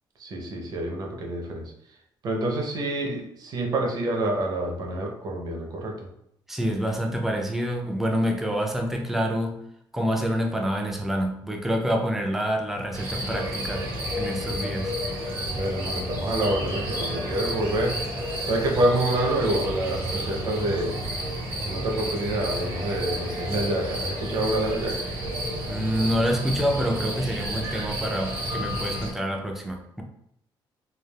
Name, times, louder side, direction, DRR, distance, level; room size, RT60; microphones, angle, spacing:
voice 1, 0.2-1.7 2.2-5.9 15.5-18.0 18.4-21.0 21.6-25.0, right 1 dB, 50° right, 1 dB, 0.7 m, -27 dB
voice 2, 6.5-9.6 9.9-13.8 14.2-14.9 25.7-30.0, equal, 5° right, 1 dB, 0.4 m, -27 dB
sound 1, 12.9-29.1, equal, 80° right, 1.5 m, -31 dB
3.3 x 2.4 x 2.3 m, 0.73 s
cardioid pair, 160°, 9 cm